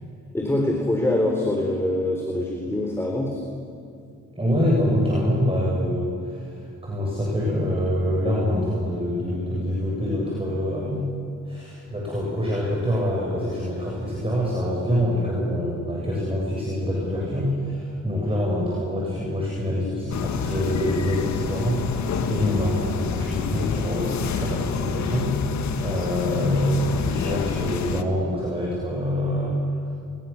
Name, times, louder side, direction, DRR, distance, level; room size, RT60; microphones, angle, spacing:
voice 1, 0.3-3.4, left 1 dB, 10° left, 1 dB, 4.0 m, -24 dB
voice 2, 4.3-11.1 11.4-29.9, equal, 20° right, -4 dB, 7.7 m, -25 dB
sound 1, 20.1-28.0, left 7 dB, 65° left, 1.7 m, -28 dB
30.0 x 21.5 x 7.3 m, 2.5 s
cardioid pair, 90°, 30 cm